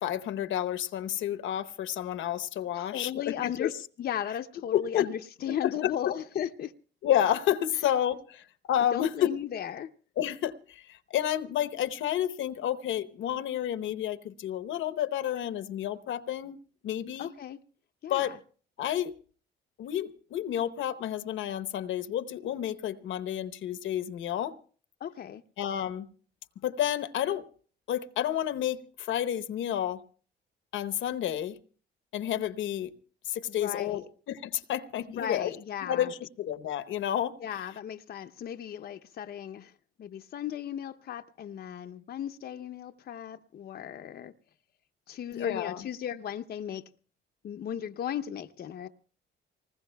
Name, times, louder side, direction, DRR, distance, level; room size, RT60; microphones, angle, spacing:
voice 1, 0.0-3.7 4.7-5.1 5.5-6.1 7.0-9.3 10.2-17.3 18.1-18.4 18.8-19.1 19.8-24.6 25.6-26.1 26.6-27.5 27.9-30.0 30.7-31.6 32.1-32.9 33.3-35.5 35.8-37.4 45.3-45.8, left 11 dB, 75° left, 0.9 m, -30 dB
voice 2, 2.7-6.7 8.9-9.9 17.2-17.6 18.0-18.4 25.0-25.4 33.5-34.0 35.0-36.1 37.4-39.7 40.0-44.3 45.1-46.9 47.4-48.9, left 9 dB, 50° left, 0.6 m, -36 dB
25.5 x 20.0 x 2.2 m
cardioid pair, 90°, 20 cm